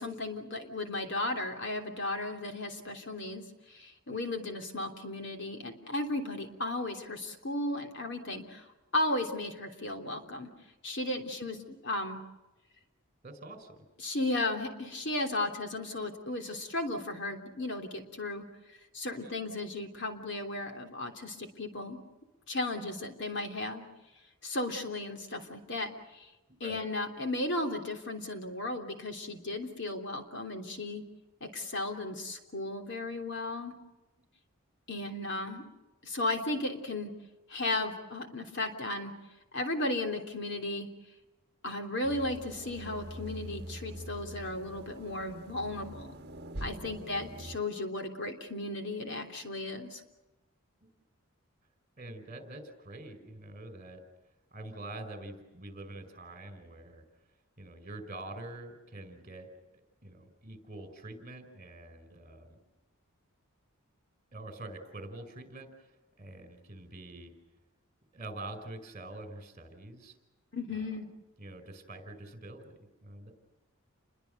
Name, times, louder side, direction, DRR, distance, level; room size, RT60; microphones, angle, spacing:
voice 1, 0.0-8.7 8.9-10.5 10.8-11.6 11.8-12.2 14.0-18.4 18.9-22.0 22.5-23.8 24.4-26.3 26.6-31.0 31.4-33.8 34.9-35.6 36.0-37.1 37.5-39.1 39.5-40.9 41.6-46.2 46.6-50.0 70.5-71.1, left 2 dB, 55° left, 4 dB, 3.3 m, -35 dB
voice 2, 13.2-13.8 19.2-19.3 26.6-26.8 52.0-54.0 54.5-57.0 57.6-62.5 64.3-67.3 68.1-70.2 71.4-73.3, right 2 dB, 35° right, 9 dB, 5.1 m, -45 dB
sound 1, 42.0-47.6, right 1 dB, 50° right, 1.4 m, -44 dB
30.0 x 22.5 x 6.7 m, 1.1 s
head